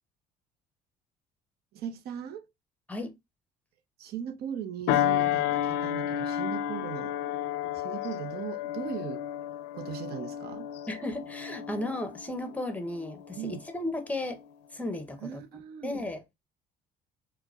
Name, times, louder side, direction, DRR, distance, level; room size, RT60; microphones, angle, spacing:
voice 1, 1.7-2.4 4.0-7.1 7.7-9.2 9.7-10.7 13.3-13.6 15.2-15.9, right 9 dB, 70° right, 0.6 m, -38 dB
sound 1, 4.9-13.7 14.2-14.4, left 11 dB, 90° left, 0.4 m, -32 dB
voice 2, 10.9-14.4 14.7-15.4 15.8-16.2, left 2 dB, 10° left, 0.7 m, -34 dB
4.5 x 2.1 x 2.3 m
cardioid pair, 110°, 17 cm